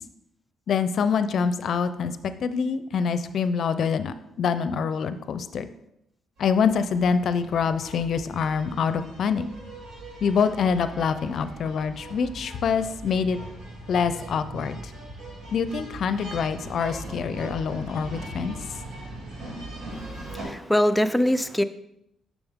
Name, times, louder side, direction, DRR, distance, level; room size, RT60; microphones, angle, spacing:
voice 1, 0.7-5.7 6.4-9.5 10.2-13.4 13.9-14.9 15.5-18.6, left 6 dB, 60° left, 12 dB, 0.5 m, -25 dB
sound 1, 6.4-20.4, right 1 dB, 80° right, 2.7 m, -40 dB
voice 2, 19.9-21.6, left 1 dB, 5° left, 10 dB, 0.4 m, -23 dB
7.0 x 6.2 x 3.5 m, 0.81 s
cardioid pair, 90°, 0 cm